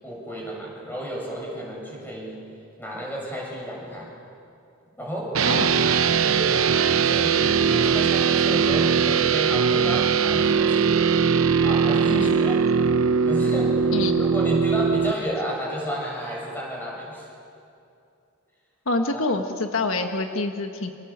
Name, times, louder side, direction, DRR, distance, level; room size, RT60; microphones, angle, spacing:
voice 1, 0.0-2.5 2.8-4.1 5.0-5.4 6.2-6.8 7.0-11.0 11.6-12.6 13.2-13.8 14.2-17.3 19.1-19.2, equal, 10° left, -3 dB, 7.8 m, -32 dB
sound 1, 5.3-15.1, right 6 dB, 90° right, 0.8 m, -20 dB
voice 2, 13.9-14.2 18.8-20.9, left 2 dB, 80° left, 5 dB, 1.6 m, -26 dB
28.5 x 26.5 x 7.5 m, 2.6 s
head